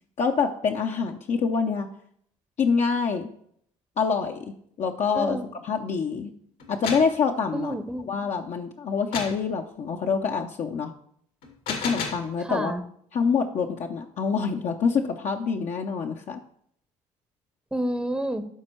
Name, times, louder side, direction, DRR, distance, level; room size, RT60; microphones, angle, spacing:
voice 1, 0.2-1.9 2.6-3.3 4.0-6.3 6.7-7.7 8.1-10.9 11.7-12.8 13.1-16.4, left 5 dB, 55° left, 3 dB, 0.7 m, -26 dB
sound 1, 6.6-7.2 9.1-9.4 11.4-12.3, left 5 dB, 75° left, 1.9 m, -32 dB
voice 2, 7.5-8.1 12.4-12.8 17.7-18.5, right 1 dB, 5° right, 10 dB, 0.8 m, -29 dB
12.0 x 4.3 x 4.5 m, 0.66 s
supercardioid pair, 75°, 15 cm